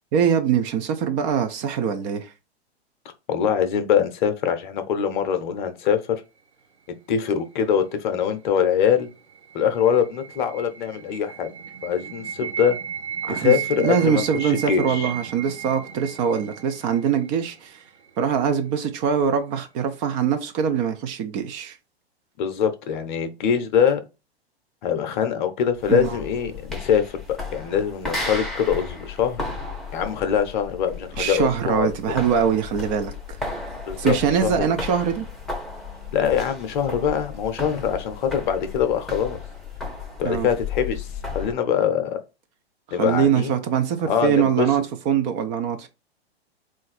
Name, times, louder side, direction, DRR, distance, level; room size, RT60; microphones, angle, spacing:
voice 1, 0.1-2.3 13.2-17.8 18.2-21.8 25.9-26.2 31.2-33.1 34.0-35.3 40.2-40.5 43.0-45.9, right 8 dB, 30° right, 0.5 m, -23 dB
voice 2, 3.3-6.0 7.1-9.1 9.5-11.5 11.8-12.8 13.3-15.1 22.4-24.0 24.8-29.4 29.9-31.9 33.9-34.1 34.4-34.7 36.1-39.4 40.2-41.1 41.3-42.2 42.9-43.5 44.1-44.7, left 8 dB, 50° left, 0.7 m, -23 dB
sound 1, 9.1-18.1, right 8 dB, 80° right, 0.7 m, -35 dB
sound 2, 25.8-41.6, left 4 dB, ahead, 0.8 m, -34 dB
3.8 x 2.5 x 4.1 m
figure-of-eight pair, 105°, 32 cm